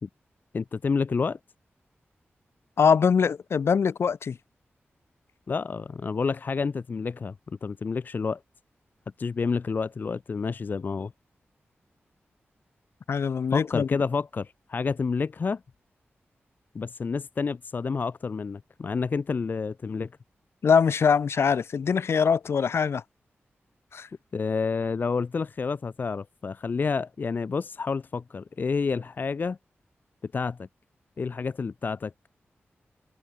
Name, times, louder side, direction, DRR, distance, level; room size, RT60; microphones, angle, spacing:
voice 1, 0.5-1.4 5.5-7.3 7.6-8.4 9.2-11.1 13.5-15.6 16.7-20.1 24.3-29.6 30.2-30.7 31.2-32.1, left 5 dB, 45° left, 0.7 m, -29 dB
voice 2, 2.8-4.4 13.1-13.9 20.6-23.0 23.9-24.1, left 6 dB, 75° left, 3.0 m, -23 dB
wide cardioid pair, 160°, 4 cm